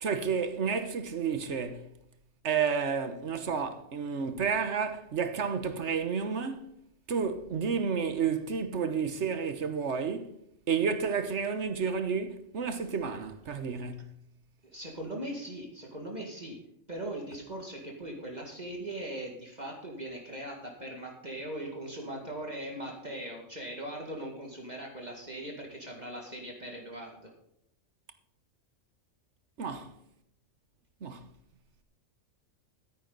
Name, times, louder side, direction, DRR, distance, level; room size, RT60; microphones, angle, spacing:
voice 1, 0.0-1.9 2.4-6.7 7.1-10.3 10.7-14.2 29.6-29.9 31.0-31.2, right 6 dB, 60° right, 1.4 m, -31 dB
voice 2, 14.6-16.6 16.9-27.3, right 1 dB, 35° right, 2.3 m, -40 dB
13.5 x 9.9 x 4.1 m
omnidirectional pair, 1.3 m